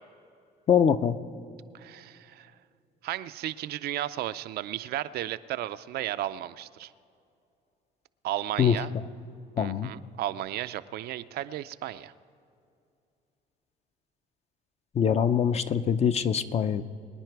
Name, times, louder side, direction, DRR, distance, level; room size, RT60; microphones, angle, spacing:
voice 1, 0.7-1.2 8.6-8.8 9.6-9.9 14.9-16.8, left 7 dB, 40° left, 11 dB, 0.6 m, -23 dB
voice 2, 1.7-2.6 3.0-6.9 8.2-8.9 9.6-12.1, right 13 dB, 70° right, 12 dB, 0.5 m, -34 dB
24.0 x 9.9 x 4.6 m, 2.5 s
cardioid pair, 110°, 17 cm